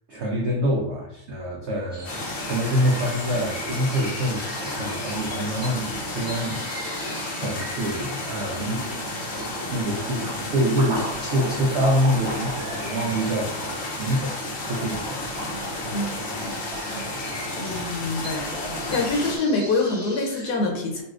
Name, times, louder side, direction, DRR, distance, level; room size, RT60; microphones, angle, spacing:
voice 1, 0.1-2.2 2.4-7.0 7.4-8.9 9.2-9.4 9.7-14.4 14.7-15.2, equal, 85° right, -2 dB, 0.6 m, -26 dB
sound 1, 1.9-20.5, equal, 10° right, 0.4 m, -41 dB
sound 2, 2.0-19.4, left 1 dB, 55° left, 0.7 m, -32 dB
sound 3, 9.4-9.7 10.3-13.9 14.7-17.4 18.0-19.3, equal, 50° right, 0.9 m, -37 dB
voice 2, 17.5-18.5 18.9-21.0, left 3 dB, 75° left, 1 dB, 1.2 m, -25 dB
4.0 x 2.4 x 2.4 m, 0.79 s
omnidirectional pair, 1.8 m